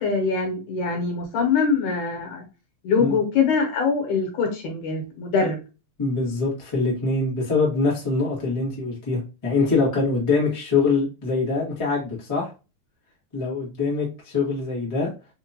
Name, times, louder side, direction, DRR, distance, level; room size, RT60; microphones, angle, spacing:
voice 1, 0.0-2.5 2.8-5.6, left 5 dB, 70° left, 3 dB, 2.3 m, -23 dB
voice 2, 6.0-12.5 13.3-15.1, left 3 dB, 40° left, -5 dB, 0.4 m, -24 dB
5.1 x 2.4 x 2.8 m, 0.30 s
omnidirectional pair, 3.8 m